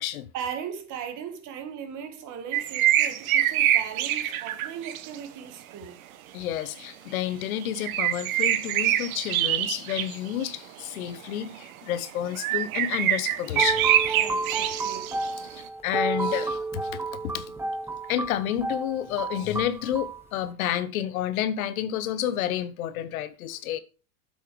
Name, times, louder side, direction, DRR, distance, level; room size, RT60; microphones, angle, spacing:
voice 1, 0.3-6.0 14.1-15.1, right 8 dB, 45° right, 1.8 m, -38 dB
sound 1, 2.5-5.2 7.6-10.5 11.3-11.6 12.3-15.7, right 12 dB, 80° right, 1.0 m, -25 dB
voice 2, 6.3-13.8 15.4-17.5 18.1-23.8, left 11 dB, 80° left, 1.1 m, -30 dB
sound 2, 13.3-20.2, right 3 dB, 5° right, 0.5 m, -31 dB
8.7 x 7.6 x 3.3 m
supercardioid pair, 120°, 41 cm